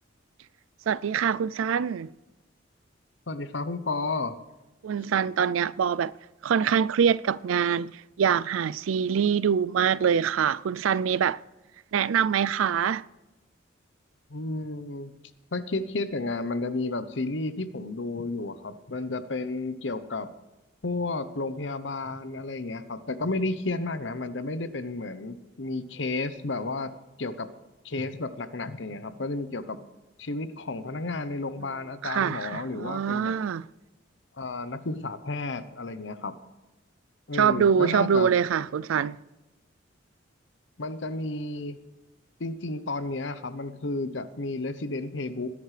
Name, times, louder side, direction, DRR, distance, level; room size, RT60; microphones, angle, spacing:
voice 1, 0.9-2.1 4.8-6.1 6.4-11.4 11.9-13.0 32.0-33.7 37.3-39.2, right 7 dB, 90° right, 0.4 m, -24 dB
voice 2, 3.3-4.4 14.3-15.1 15.5-20.3 20.8-26.9 27.2-27.5 27.8-29.8 30.2-33.3 34.4-36.4 37.3-38.3 40.8-41.8 42.4-45.5, left 2 dB, 65° left, 0.9 m, -32 dB
20.5 x 11.0 x 3.3 m
head